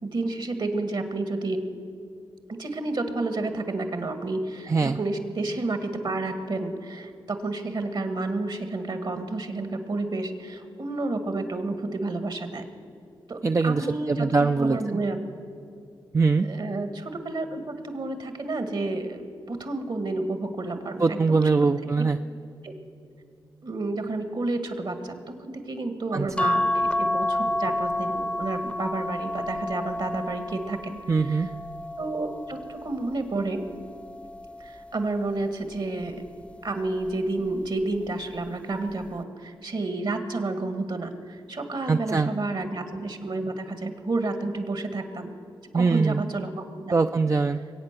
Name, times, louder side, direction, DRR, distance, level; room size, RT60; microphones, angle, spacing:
voice 1, 0.0-1.6 2.5-12.7 13.3-15.2 16.4-21.4 22.6-22.7 23.6-30.9 31.2-31.5 32.0-33.6 34.6-36.2 36.6-45.3 45.7-46.5 46.8-46.9, right 2 dB, 60° right, 8 dB, 1.9 m, -30 dB
voice 2, 13.4-15.0 16.1-16.5 21.0-22.2 26.1-26.3 31.1-31.5 41.9-42.3 45.7-46.2 46.9-47.6, right 4 dB, 35° right, 7 dB, 0.5 m, -22 dB
sound 1, 26.4-33.0 33.6-35.0 36.3-36.7 37.0-37.1, left 1 dB, 10° left, 0.8 m, -30 dB
22.0 x 8.7 x 6.8 m, 2.5 s
cardioid pair, 50°, 9 cm